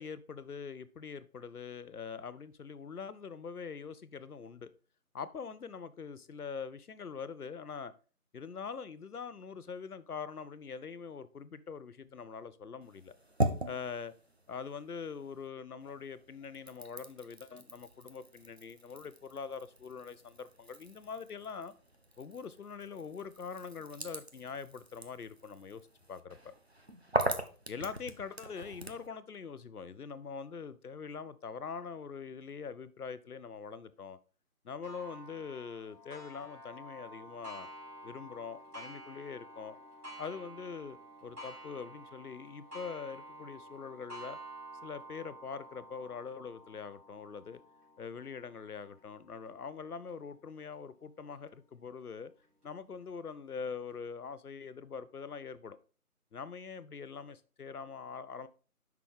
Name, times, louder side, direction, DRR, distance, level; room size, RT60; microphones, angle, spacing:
voice 1, 0.0-4.7 5.1-7.9 8.3-13.1 13.7-14.1 14.5-21.7 22.2-25.8 26.1-26.5 27.7-34.2 34.6-37.7 38.0-39.8 40.2-44.4 44.8-47.6 48.0-52.3 52.6-55.8 56.3-58.5, left 6 dB, 75° left, 0.7 m, -43 dB
sound 1, 12.8-15.5 15.8-29.1, right 1 dB, 45° right, 0.6 m, -40 dB
Clock, 34.8-50.1 50.7-50.8 51.4-51.5 52.4-52.5, right 1 dB, 90° right, 3.2 m, -50 dB
5.8 x 3.9 x 4.6 m
figure-of-eight pair, 170°, 45 cm